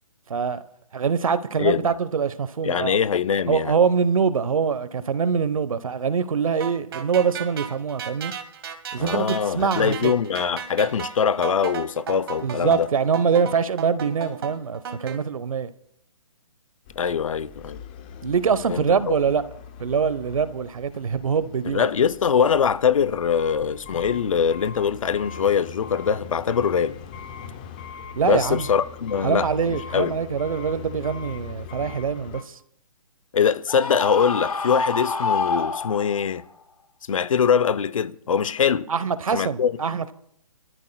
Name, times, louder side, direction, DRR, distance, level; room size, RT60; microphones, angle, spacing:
voice 1, 0.9-3.0 3.5-8.3 8.9-10.1 12.4-15.7 18.2-19.4 19.8-21.9 28.2-28.7 29.2-32.6 38.9-40.1, right 6 dB, 75° right, 1.0 m, -24 dB
voice 2, 1.6-1.9 2.6-3.7 9.0-12.9 17.0-17.8 18.7-18.8 21.6-27.0 28.2-30.2 33.3-36.4 37.1-38.9 39.3-39.7, left 7 dB, 70° left, 0.6 m, -23 dB
sound 1, 6.6-15.2, right 7 dB, 45° right, 1.5 m, -35 dB
sound 2, 16.9-32.4, left 7 dB, 15° left, 0.5 m, -41 dB
Screaming, 33.7-36.4, left 4 dB, 90° left, 1.2 m, -27 dB
24.0 x 13.5 x 2.3 m
hypercardioid pair, 165°, 18 cm